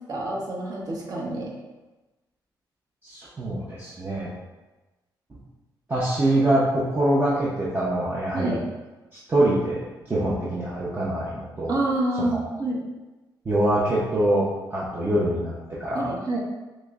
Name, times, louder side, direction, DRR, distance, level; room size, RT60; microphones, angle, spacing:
voice 1, 0.1-1.6 8.3-8.6 11.7-12.8 15.9-16.4, right 2 dB, 50° right, -3 dB, 0.9 m, -27 dB
voice 2, 3.0-4.3 5.9-8.6 9.3-11.7 12.3-12.4 13.5-15.5 15.8-16.1, right 1 dB, 25° right, -7 dB, 0.6 m, -24 dB
6.0 x 2.1 x 2.3 m, 1.1 s
cardioid pair, 110°, 8 cm